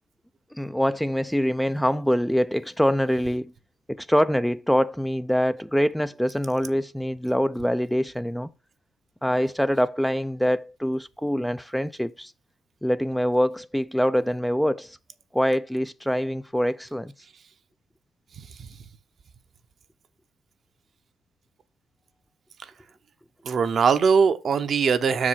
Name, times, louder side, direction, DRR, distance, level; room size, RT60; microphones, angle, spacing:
voice 1, 0.5-3.5 3.9-8.5 9.2-12.3 12.8-15.0 15.3-17.1, equal, ahead, 0.3 m, -24 dB
voice 2, 23.4-25.3, right 6 dB, 55° right, 0.7 m, -21 dB
6.2 x 4.9 x 5.5 m
cardioid pair, 90°, 0 cm